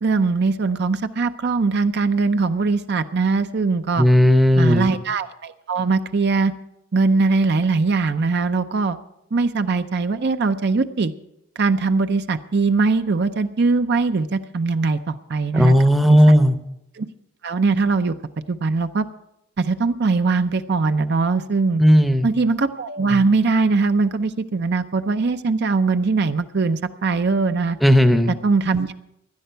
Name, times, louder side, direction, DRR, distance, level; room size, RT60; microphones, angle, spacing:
voice 1, 0.0-4.1 4.6-6.5 6.9-9.0 9.3-11.1 11.6-15.7 16.0-16.2 17.0-17.1 17.4-18.1 18.5-19.1 19.6-21.8 22.2-27.8 28.4-28.9, right 4 dB, 50° right, 9 dB, 0.5 m, -21 dB
voice 2, 4.0-4.9 15.5-16.6 21.8-22.3 27.8-28.3, equal, ahead, 7 dB, 0.7 m, -14 dB
17.0 x 12.0 x 4.5 m, 0.83 s
head